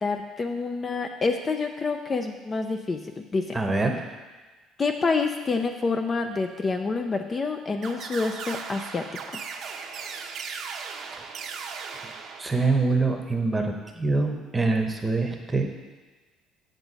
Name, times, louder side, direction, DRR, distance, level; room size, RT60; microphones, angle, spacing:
voice 1, 0.0-3.0 3.3-3.6 4.8-9.0, left 4 dB, 25° left, 5 dB, 0.5 m, -27 dB
voice 2, 3.5-3.9 11.9-12.1 12.4-15.7, right 3 dB, 15° right, 3 dB, 0.9 m, -25 dB
sound 1, 7.8-13.0, right 6 dB, 55° right, 0.8 m, -37 dB
8.0 x 6.9 x 4.1 m, 1.3 s
cardioid pair, 120°, 0 cm